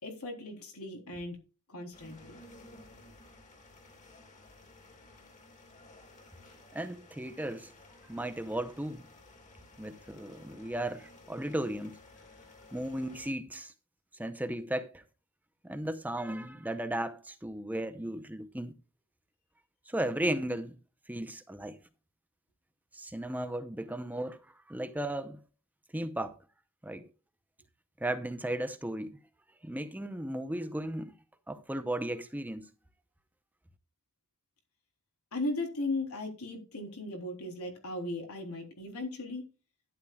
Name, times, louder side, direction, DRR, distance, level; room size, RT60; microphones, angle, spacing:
voice 1, 0.0-1.4 1.7-2.3 35.3-39.4, left 2 dB, 85° left, 3.6 m, -37 dB
sound 1, 1.9-13.3, left 2 dB, 35° left, 2.4 m, -55 dB
voice 2, 6.7-7.7 8.1-9.1 9.8-12.0 12.7-13.7 14.1-15.0 15.6-18.7 19.9-20.8 21.1-21.8 22.9-25.4 25.9-26.4 26.8-27.1 28.0-29.2 29.6-31.1 31.5-32.7, right 1 dB, 10° right, 0.7 m, -35 dB
12.0 x 11.0 x 2.4 m
head